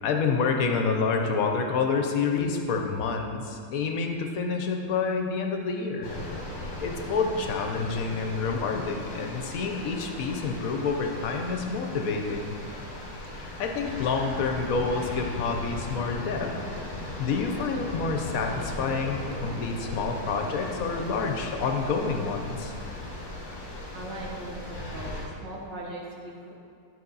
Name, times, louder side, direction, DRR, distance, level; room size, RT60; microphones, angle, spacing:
voice 1, 0.0-6.1 6.8-12.6 13.3-16.5 17.2-22.7, left 4 dB, 60° left, 3 dB, 1.1 m, -28 dB
sound 1, 6.0-25.3, left 2 dB, 30° left, 1.3 m, -37 dB
voice 2, 23.9-26.5, right 2 dB, 85° right, -2 dB, 1.9 m, -39 dB
11.5 x 4.8 x 4.0 m, 2.4 s
omnidirectional pair, 1.9 m